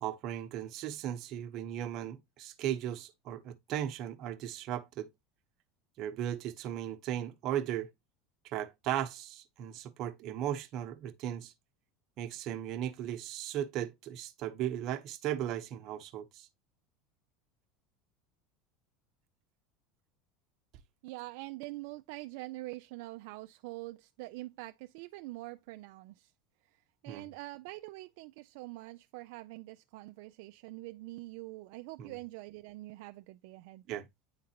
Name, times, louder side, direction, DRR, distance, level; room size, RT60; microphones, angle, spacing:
voice 1, 0.0-5.1 6.0-7.9 8.4-11.5 12.2-16.5 27.1-27.3 32.0-32.2 33.9-34.1, right 11 dB, 50° right, 0.9 m, -37 dB
voice 2, 21.0-26.3 27.0-33.8, right 20 dB, 70° right, 0.3 m, -45 dB
9.4 x 3.8 x 2.9 m
supercardioid pair, 125°, 0 cm